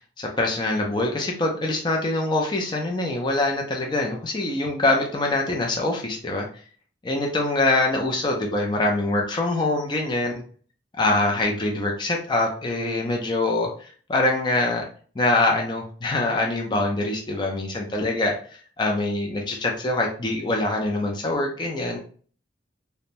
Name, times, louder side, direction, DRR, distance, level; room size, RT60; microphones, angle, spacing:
voice 1, 0.2-6.5 7.0-10.3 11.0-14.8 15.2-18.3 18.8-22.0, left 2 dB, 25° left, 0 dB, 0.4 m, -24 dB
2.5 x 2.1 x 2.9 m, 0.43 s
head